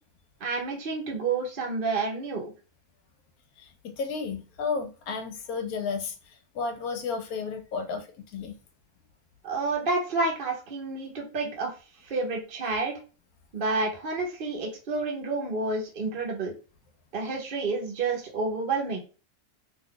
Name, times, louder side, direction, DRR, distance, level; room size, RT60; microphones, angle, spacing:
voice 1, 0.4-2.5 9.4-11.7 12.0-13.0 13.5-16.5 17.1-19.0, right 3 dB, 50° right, -1 dB, 0.7 m, -29 dB
voice 2, 3.6-8.6, left 5 dB, 75° left, 6 dB, 1.0 m, -33 dB
2.7 x 2.3 x 3.6 m, 0.35 s
omnidirectional pair, 1.6 m